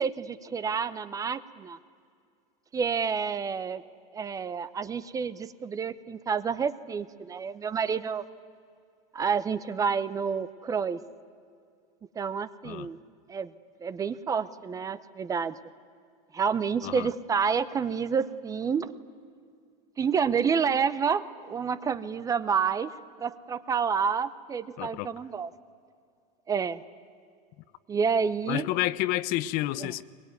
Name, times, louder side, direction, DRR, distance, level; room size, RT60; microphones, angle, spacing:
voice 1, 0.0-1.8 2.7-3.8 4.1-8.2 9.1-11.0 12.2-13.0 13.3-13.5 13.8-15.6 16.3-18.9 20.0-25.5 26.5-26.8 27.9-28.7 29.8-29.9, right 6 dB, 15° right, 0.6 m, -29 dB
voice 2, 24.8-25.1 28.5-30.0, left 16 dB, 45° left, 0.6 m, -29 dB
22.5 x 21.5 x 9.4 m
supercardioid pair, 155°, 20 cm